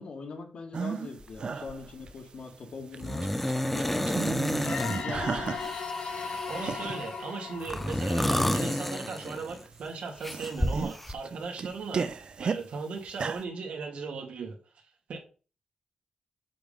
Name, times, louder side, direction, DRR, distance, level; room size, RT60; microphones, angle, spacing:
voice 1, 0.0-3.3 3.7-5.5, left 4 dB, 60° left, 1.9 m, -41 dB
sound 1, 0.7-1.1 1.4-2.4 2.8-3.5 3.8-5.8 6.1-7.0 7.5-7.6 8.2-8.9 9.5-9.9 10.2-12.6 13.1-13.4, right 5 dB, 45° right, 0.5 m, -34 dB
sound 2, 1.2-1.4 1.7-2.1 3.0-5.1 5.6-6.9 7.6-9.7 10.2-11.1, left 1 dB, 5° left, 0.4 m, -30 dB
sound 3, 4.6-9.2, left 5 dB, 90° left, 3.9 m, -38 dB
voice 2, 6.3-12.1 12.4-14.6 15.1-15.2, right 4 dB, 75° right, 1.8 m, -37 dB
7.7 x 3.6 x 5.1 m
wide cardioid pair, 155°, 2 cm